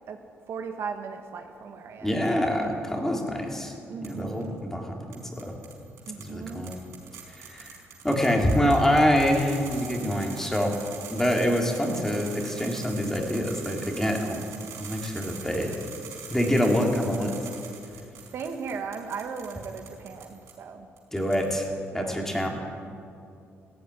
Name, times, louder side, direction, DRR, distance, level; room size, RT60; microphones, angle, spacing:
voice 1, 0.5-2.6 3.9-4.6 6.1-6.7 18.3-20.9 21.9-22.2, right 5 dB, 60° right, 5 dB, 1.5 m, -37 dB
voice 2, 2.0-3.7 4.0-5.5 6.2-6.7 7.3-7.7 8.0-10.8 11.1-14.4 14.8-15.7 16.3-17.3 21.1-21.7 21.9-22.5, equal, 10° left, 1 dB, 3.2 m, -25 dB
sound 1, 4.0-4.5 5.1-20.6 21.0-21.7, right 6 dB, 80° right, 5.0 m, -44 dB
16.5 x 15.5 x 9.9 m, 2.5 s
cardioid pair, 130°, 5 cm